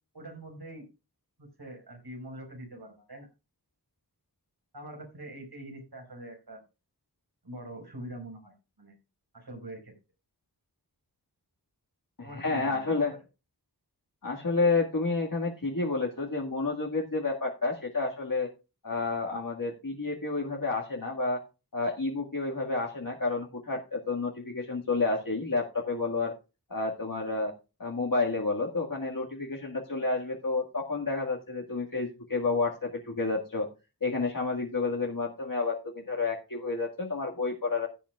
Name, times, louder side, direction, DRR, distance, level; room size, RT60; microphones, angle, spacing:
voice 1, 0.1-0.8 1.4-3.3 4.7-6.6 7.4-8.5 8.8-8.9 9.3-9.9 12.2-13.0, right 1 dB, 75° right, 3 dB, 4.9 m, -44 dB
voice 2, 12.2-13.2 14.2-18.5 18.8-21.4 21.7-26.3 26.7-27.5 27.8-33.7 34.0-37.9, left 3 dB, 55° left, -1 dB, 1.9 m, -30 dB
15.5 x 9.1 x 2.4 m, 0.29 s
wide cardioid pair, 45°, 39 cm